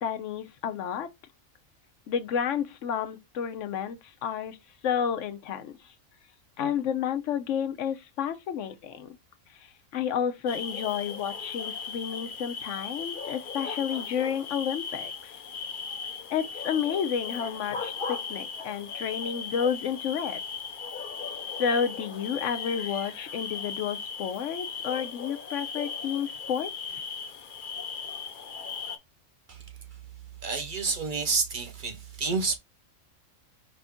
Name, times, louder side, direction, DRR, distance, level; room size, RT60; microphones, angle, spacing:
voice 1, 0.0-1.1 2.1-4.6 4.8-5.7 6.6-9.2 9.9-15.3 16.3-20.4 21.6-26.7, left 8 dB, 70° left, 1.0 m, -31 dB
sound 1, 10.5-29.0, left 5 dB, 50° left, 0.7 m, -37 dB
voice 2, 29.5-30.0 30.4-32.6, right 4 dB, 50° right, 0.6 m, -30 dB
5.1 x 2.6 x 3.4 m
omnidirectional pair, 1.4 m